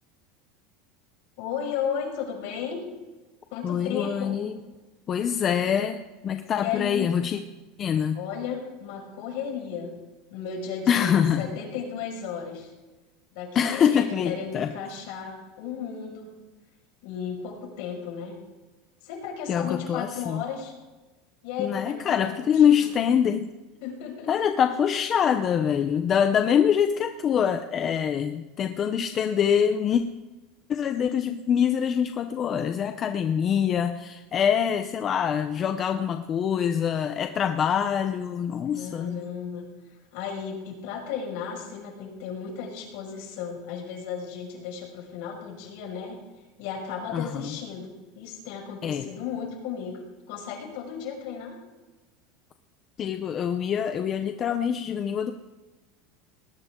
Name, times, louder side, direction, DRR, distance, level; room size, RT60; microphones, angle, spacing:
voice 1, 1.4-2.8 3.5-4.4 6.6-7.1 8.1-9.9 10.3-12.7 13.3-16.3 17.0-18.4 19.0-20.7 21.4-22.9 23.8-24.3 38.7-39.6 40.1-46.2 46.6-50.0 50.3-51.6, left 7 dB, 60° left, 1 dB, 5.6 m, -34 dB
voice 2, 3.6-4.6 5.1-7.4 7.8-8.2 10.9-11.6 13.5-14.7 19.5-20.4 21.6-23.5 24.3-30.0 30.7-39.3 47.1-47.5 48.8-49.1 53.0-55.3, left 8 dB, 25° left, 7 dB, 0.7 m, -24 dB
19.0 x 19.0 x 3.8 m, 1.1 s
supercardioid pair, 165°, 0 cm